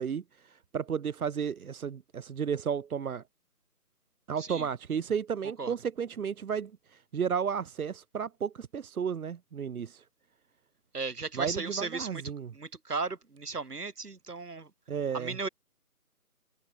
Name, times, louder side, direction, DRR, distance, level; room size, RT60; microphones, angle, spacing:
voice 1, 0.0-3.2 4.3-10.0 11.3-12.5 14.9-15.4, right 7 dB, 70° right, 0.7 m, -33 dB
voice 2, 4.4-4.7 5.6-5.7 10.9-12.2 12.5-14.7 15.1-15.5, right 4 dB, 85° right, 2.9 m, -36 dB
figure-of-eight pair, 175°, 45 cm